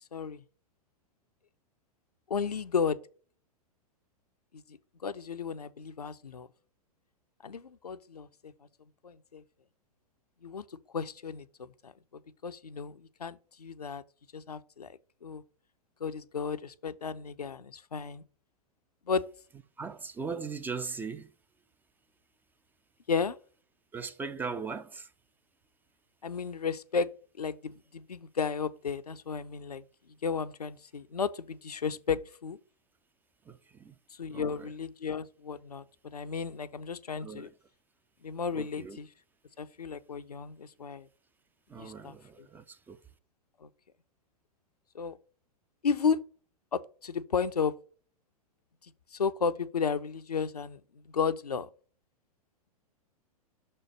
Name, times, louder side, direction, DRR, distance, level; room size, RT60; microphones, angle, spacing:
voice 1, 0.1-0.4 2.3-3.0 4.5-4.6 5.0-6.5 7.4-8.5 9.0-9.4 10.4-10.6 10.9-11.9 12.4-14.0 14.3-15.4 16.0-18.2 19.1-19.2 23.1-23.4 26.2-27.1 27.4-29.8 30.2-32.6 34.2-37.5 38.2-39.1 39.6-41.1 41.8-42.5 43.6-43.7 44.9-45.2 45.8-46.2 46.7-47.7 49.1-50.8 51.1-51.7, left 6 dB, 80° left, 0.6 m, -33 dB
voice 2, 19.8-21.3 23.9-25.1 33.5-34.0 34.3-34.7 37.2-37.5 38.5-39.0 41.7-43.0, right 5 dB, 10° right, 0.4 m, -39 dB
6.2 x 4.4 x 6.1 m
figure-of-eight pair, 100°, 20 cm